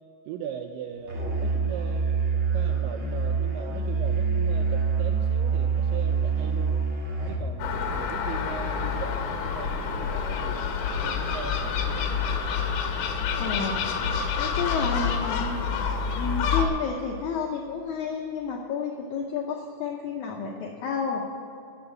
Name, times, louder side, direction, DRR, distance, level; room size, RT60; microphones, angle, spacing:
voice 1, 0.3-2.1 2.5-6.8 7.3-10.7 11.0-12.2, right 8 dB, 85° right, 6 dB, 2.0 m, -39 dB
Musical instrument, 1.1-7.5, right 5 dB, 60° right, 0.7 m, -26 dB
Gull seagull, 7.6-16.7, left 6 dB, 70° left, 2.0 m, -28 dB
voice 2, 13.4-13.8 14.4-15.6 16.1-21.3, left 5 dB, 85° left, 1 dB, 1.7 m, -31 dB
13.0 x 6.9 x 8.4 m, 2.8 s
omnidirectional pair, 4.5 m